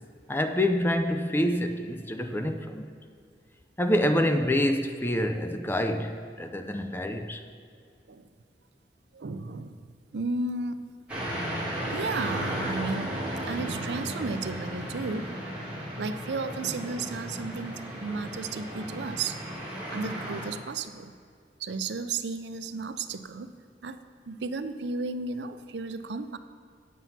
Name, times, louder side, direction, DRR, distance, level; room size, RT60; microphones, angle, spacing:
voice 1, 0.3-2.9 3.8-7.4, left 1 dB, 10° left, 7 dB, 0.5 m, -27 dB
voice 2, 9.1-9.8 10.1-11.0 11.9-15.4 16.0-19.4 19.9-21.1 21.6-23.6 23.8-26.4, right 3 dB, 70° right, 11 dB, 0.5 m, -34 dB
sound 1, 11.1-20.5, equal, 5° right, 2.4 m, -35 dB
9.2 x 7.6 x 5.7 m, 2.2 s
head